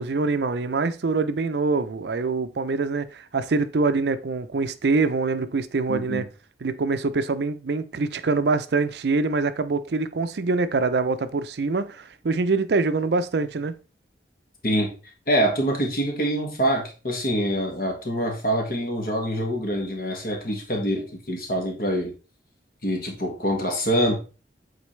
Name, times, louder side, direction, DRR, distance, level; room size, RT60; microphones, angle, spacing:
voice 1, 0.0-6.3 6.6-13.7, right 3 dB, 65° right, 0.5 m, -24 dB
voice 2, 5.9-6.2 14.6-14.9 15.3-22.1 22.8-24.2, equal, 50° left, 1.7 m, -25 dB
8.4 x 4.0 x 3.2 m
head